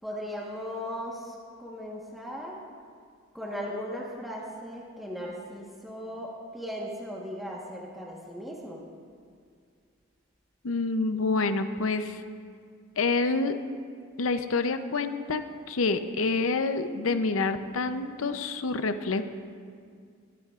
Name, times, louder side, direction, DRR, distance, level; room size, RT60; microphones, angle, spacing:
voice 1, 0.0-2.6 3.3-8.8, equal, ahead, -4 dB, 1.2 m, -37 dB
voice 2, 10.6-12.2 13.0-13.6 14.2-15.4 15.7-19.2, left 3 dB, 85° left, 9 dB, 0.6 m, -27 dB
22.0 x 12.0 x 2.4 m, 2.2 s
head